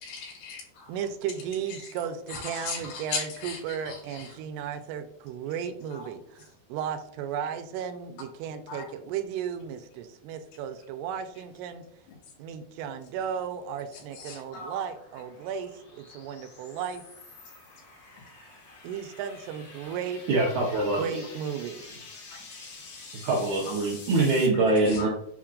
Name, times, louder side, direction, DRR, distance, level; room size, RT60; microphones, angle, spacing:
voice 1, 0.0-0.9 1.7-1.8 2.3-4.4 5.9-6.1 8.7-8.9 13.9-14.8 20.7-21.0 22.3-22.8 24.5-25.1, left 4 dB, 75° left, -2 dB, 3.6 m, -38 dB
voice 2, 0.9-11.8 12.4-17.0 18.8-20.2 21.0-22.0, right 8 dB, 90° right, 8 dB, 2.7 m, -35 dB
sound 1, 13.1-24.5, left 3 dB, 55° left, 1.6 m, -48 dB
voice 3, 20.3-21.3 23.2-25.1, right 2 dB, 75° right, -3 dB, 1.8 m, -24 dB
7.2 x 5.8 x 2.5 m, 0.74 s
omnidirectional pair, 4.7 m